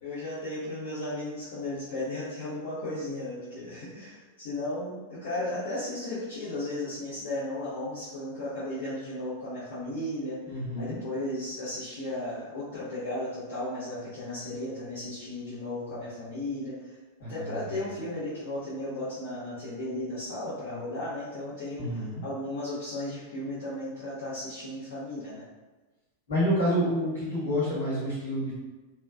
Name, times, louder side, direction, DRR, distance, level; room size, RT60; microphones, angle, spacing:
voice 1, 0.0-10.4 10.8-16.9 17.3-25.4, left 1 dB, 55° left, -12 dB, 0.9 m, -35 dB
voice 2, 10.5-11.0 17.2-17.8 21.8-22.2 26.3-28.5, equal, 70° left, -9 dB, 1.4 m, -28 dB
3.3 x 2.1 x 2.3 m, 1.2 s
figure-of-eight pair, 90°, 0 cm